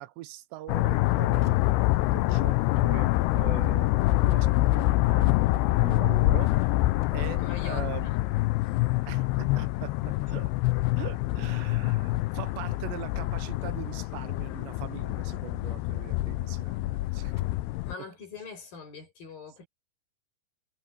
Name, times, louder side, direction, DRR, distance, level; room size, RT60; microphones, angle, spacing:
voice 1, 0.0-6.7 7.1-8.1 9.1-10.5 11.0-17.4, right 15 dB, 85° right, 2.9 m, -42 dB
sound 1, 0.7-17.9, left 18 dB, 85° left, 2.5 m, -26 dB
sound 2, 1.4-2.3 3.7-7.6 8.7-10.9 11.1-11.9 13.4-14.9 15.4-16.3 16.6-16.7 17.1-17.8 18.5-18.7, left 1 dB, 15° left, 7.5 m, -63 dB
voice 2, 7.2-8.2 8.6-8.8 17.8-19.7, left 5 dB, 50° left, 9.8 m, -43 dB
omnidirectional pair, 5.1 m